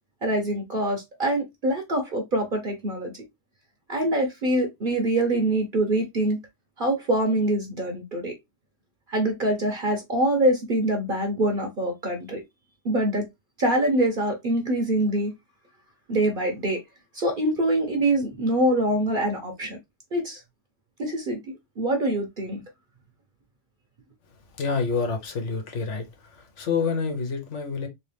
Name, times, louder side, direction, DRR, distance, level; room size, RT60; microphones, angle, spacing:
voice 1, 0.2-3.1 3.9-6.4 6.8-8.3 9.1-12.4 12.8-13.3 13.6-15.3 16.1-16.8 17.1-19.8 20.1-20.4 21.0-22.6, right 1 dB, 45° right, 1.0 m, -24 dB
voice 2, 24.6-26.1 26.3-27.9, left 5 dB, 75° left, 1.3 m, -27 dB
3.1 x 3.1 x 3.3 m
omnidirectional pair, 1.3 m